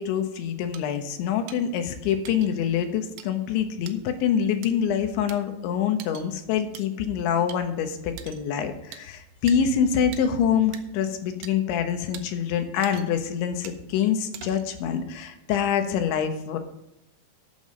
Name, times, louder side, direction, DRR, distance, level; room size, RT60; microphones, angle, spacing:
voice 1, 0.0-16.6, left 8 dB, 85° left, 7 dB, 3.5 m, -25 dB
sound 1, 0.7-0.8 1.5-1.6 2.2-2.5 3.2-3.3 3.9-4.0 4.6-4.7 5.3-5.4 6.0-6.3 6.7-6.8 7.5-7.6 8.2-8.4 8.9-9.0 9.5-9.6 10.1-10.2 10.7-10.8 11.4-11.5 12.1-12.2 12.8-13.2 13.6-13.8 14.3-14.7, right 10 dB, 75° right, 2.2 m, -42 dB
13.0 x 7.1 x 5.3 m, 0.84 s
omnidirectional pair, 5.3 m